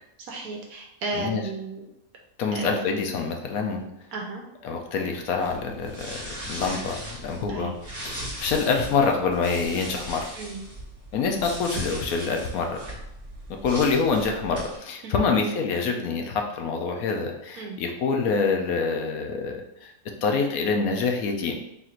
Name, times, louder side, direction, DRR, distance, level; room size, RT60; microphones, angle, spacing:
voice 1, 0.3-1.8 2.5-2.9 4.1-4.4 7.5-7.7 10.4-10.6 15.0-15.3 17.6-17.8, right 3 dB, 80° right, 1 dB, 1.1 m, -34 dB
voice 2, 2.4-3.8 4.6-7.8 8.0-10.3 11.1-12.8 13.6-19.9 20.2-21.6, left 4 dB, 80° left, 2 dB, 1.1 m, -26 dB
sound 1, 5.4-14.8, equal, 15° right, 1.0 m, -38 dB
4.0 x 2.5 x 4.3 m, 0.84 s
omnidirectional pair, 1.5 m